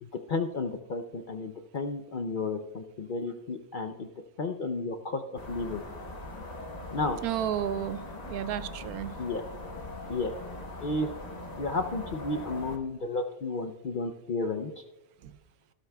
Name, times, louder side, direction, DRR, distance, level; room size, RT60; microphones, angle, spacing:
voice 1, 0.0-4.1 4.4-5.8 6.9-7.2 9.2-9.4 10.1-10.3 10.8-11.1 11.6-14.8, left 3 dB, 60° left, 6 dB, 0.5 m, -32 dB
sound 1, 5.4-12.8, left 2 dB, 30° left, 1.2 m, -41 dB
voice 2, 7.2-9.2 15.2-15.3, right 10 dB, 80° right, 14 dB, 1.1 m, -32 dB
15.5 x 12.5 x 2.2 m, 1.0 s
omnidirectional pair, 1.6 m